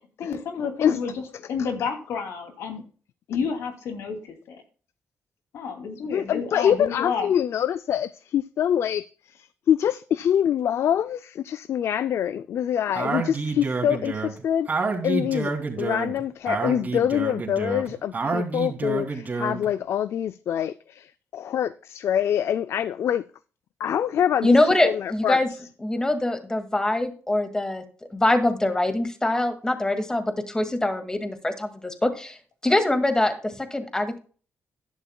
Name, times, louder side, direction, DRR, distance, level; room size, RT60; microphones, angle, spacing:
voice 1, 0.2-1.1 1.5-2.8 3.3-4.6 5.5-7.3, left 6 dB, 85° left, 2.6 m, -30 dB
voice 2, 6.1-9.0 9.3-14.7 15.0-23.3 23.8-24.6 24.8-25.4, left 9 dB, 70° left, 0.4 m, -25 dB
Speech, 13.0-19.7, right 4 dB, 35° right, 2.8 m, -28 dB
voice 3, 24.4-25.5 25.8-27.8 28.1-32.4 32.6-34.2, left 1 dB, 15° left, 2.1 m, -23 dB
14.0 x 11.5 x 2.3 m
cardioid pair, 95°, 5 cm